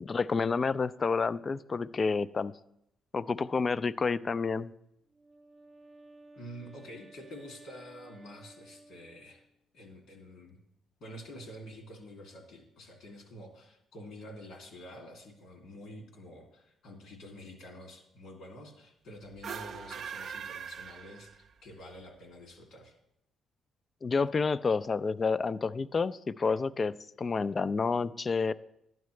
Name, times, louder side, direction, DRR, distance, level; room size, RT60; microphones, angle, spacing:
voice 1, 0.0-2.5 3.1-4.7 24.0-28.5, left 4 dB, 35° left, 16 dB, 0.3 m, -29 dB
Wind instrument woodwind instrument, 5.1-9.6, right 2 dB, 25° right, 0.8 m, -55 dB
voice 2, 6.4-9.4 9.7-10.6 11.0-22.9, equal, 75° left, 1 dB, 2.5 m, -48 dB
sound 1, 19.3-21.7, right 7 dB, 60° right, 0.4 m, -41 dB
12.0 x 9.1 x 3.2 m, 0.79 s
cardioid pair, 90°, 0 cm